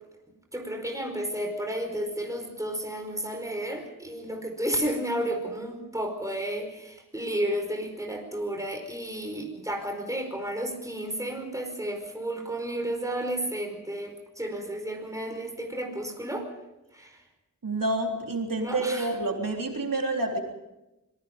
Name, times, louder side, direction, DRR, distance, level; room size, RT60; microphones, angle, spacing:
voice 1, 0.5-16.5 16.9-17.2 18.6-19.1, right 1 dB, 10° right, 3 dB, 4.8 m, -32 dB
voice 2, 17.6-20.4, right 2 dB, 85° right, 2 dB, 3.7 m, -28 dB
26.0 x 21.0 x 5.3 m, 0.95 s
wide cardioid pair, 60°, 33 cm